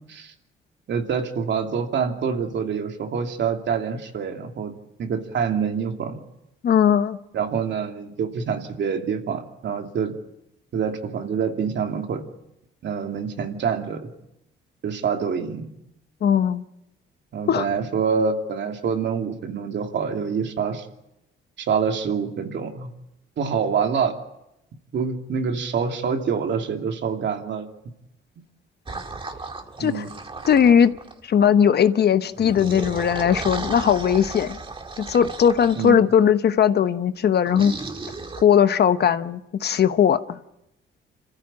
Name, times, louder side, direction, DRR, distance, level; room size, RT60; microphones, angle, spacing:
voice 1, 0.9-4.7 5.0-6.2 7.3-10.1 10.7-12.2 12.8-14.1 14.8-15.7 17.3-20.9 21.6-22.9 23.4-24.1 24.9-27.7 29.8-30.1 35.7-36.1, right 6 dB, 65° right, 4 dB, 2.7 m, -26 dB
voice 2, 6.6-7.2 16.2-16.6 17.5-17.7 29.8-30.0 30.5-30.9 31.2-34.6 35.0-37.7 38.4-40.4, left 8 dB, 55° left, 11 dB, 1.1 m, -19 dB
sound 1, 28.9-31.2 32.3-35.9 37.4-38.4, right 3 dB, 25° right, 2.3 m, -35 dB
27.0 x 15.0 x 8.7 m, 0.86 s
cardioid pair, 90°, 20 cm